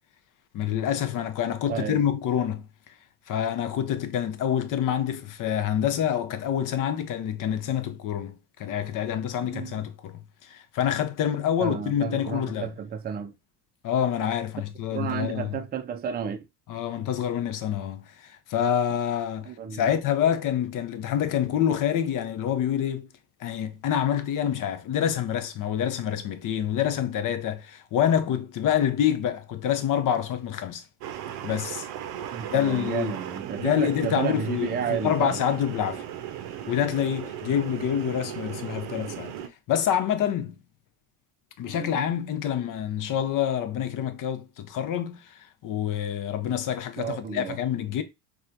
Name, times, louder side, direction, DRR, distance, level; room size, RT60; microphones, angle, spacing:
voice 1, 0.5-2.7 3.3-12.7 13.8-15.6 16.7-23.1 23.4-30.8 31.4-31.9 32.5-33.2 33.6-36.0 36.7-39.4 39.7-40.6 41.6-48.0, left 9 dB, 45° left, 0.7 m, -27 dB
voice 2, 1.7-2.0 9.4-9.8 11.6-13.3 14.9-16.5 19.5-19.9 32.3-35.4 41.6-41.9 47.0-47.6, right 8 dB, 20° right, 0.5 m, -32 dB
sound 1, 31.0-39.5, right 10 dB, 55° right, 0.7 m, -37 dB
4.2 x 2.4 x 2.5 m
hypercardioid pair, 70°, 46 cm